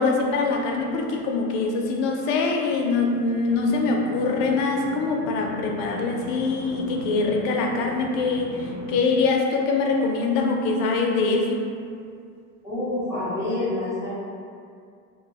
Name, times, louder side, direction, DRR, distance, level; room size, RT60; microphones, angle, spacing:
voice 1, 0.0-11.6, left 3 dB, 70° left, 1 dB, 0.5 m, -23 dB
sound 1, 3.4-9.0, equal, 80° right, 1.0 m, -38 dB
voice 2, 12.6-14.1, left 2 dB, 10° right, -12 dB, 0.6 m, -27 dB
2.1 x 2.0 x 3.2 m, 2.3 s
cardioid pair, 155°, 41 cm